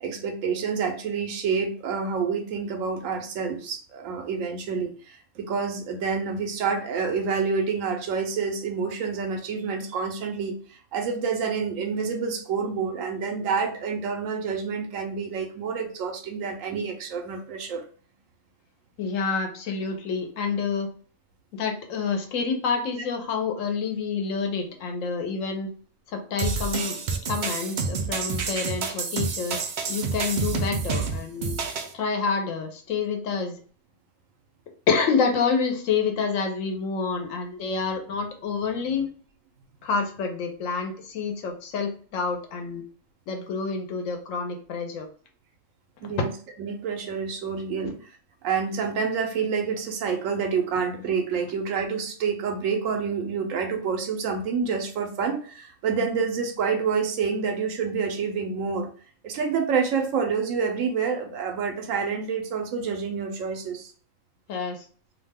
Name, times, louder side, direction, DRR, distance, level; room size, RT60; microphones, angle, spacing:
voice 1, 0.0-17.8 46.0-46.3 46.6-48.0 48.4-58.9 59.2-63.9, right 5 dB, 90° right, 4 dB, 1.0 m, -28 dB
voice 2, 19.0-20.9 21.5-25.7 26.1-27.0 27.3-31.6 31.9-33.6 34.9-39.1 39.8-42.8 43.3-45.1 46.1-46.2 64.5-64.9, left 5 dB, 80° left, 4 dB, 1.0 m, -28 dB
sound 1, 26.4-31.9, right 5 dB, 70° right, 0.4 m, -28 dB
2.7 x 2.1 x 3.4 m, 0.43 s
omnidirectional pair, 1.3 m